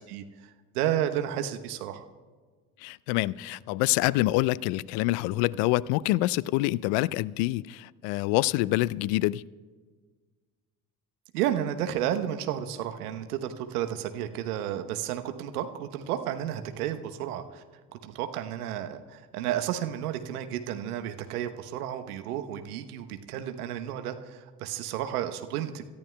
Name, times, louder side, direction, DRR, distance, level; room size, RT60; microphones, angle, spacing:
voice 1, 0.0-2.1 11.3-17.6 18.0-25.8, right 11 dB, 75° right, 8 dB, 1.0 m, -32 dB
voice 2, 2.8-9.4, left 18 dB, 60° left, 23 dB, 0.5 m, -26 dB
26.5 x 13.5 x 2.3 m, 1.5 s
figure-of-eight pair, 55°, 45 cm